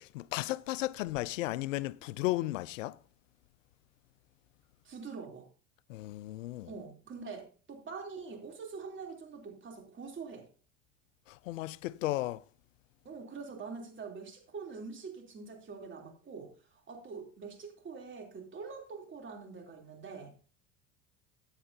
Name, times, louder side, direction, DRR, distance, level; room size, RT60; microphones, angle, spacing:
voice 1, 0.0-3.0 5.9-6.7 11.3-12.4, left 17 dB, 90° left, 0.5 m, -34 dB
voice 2, 4.8-5.5 6.7-10.4 13.0-20.3, right 5 dB, 30° right, 3.3 m, -44 dB
14.5 x 8.9 x 2.8 m
hypercardioid pair, 95°, 38 cm